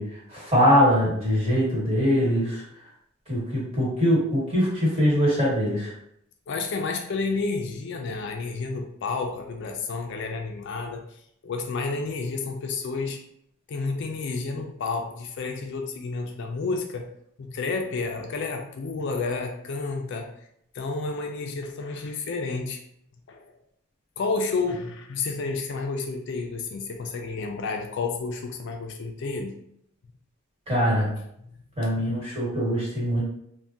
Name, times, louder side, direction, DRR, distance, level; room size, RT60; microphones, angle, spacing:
voice 1, 0.0-2.6 3.3-5.9 30.7-31.1 31.8-33.2, equal, 30° right, -6 dB, 1.4 m, -22 dB
voice 2, 6.5-11.2 11.4-13.2 13.7-17.1 17.4-20.3 20.7-22.8 23.3-23.6 24.2-29.5 31.5-31.6, left 4 dB, 55° left, 3 dB, 0.4 m, -30 dB
3.5 x 2.1 x 2.6 m, 0.73 s
head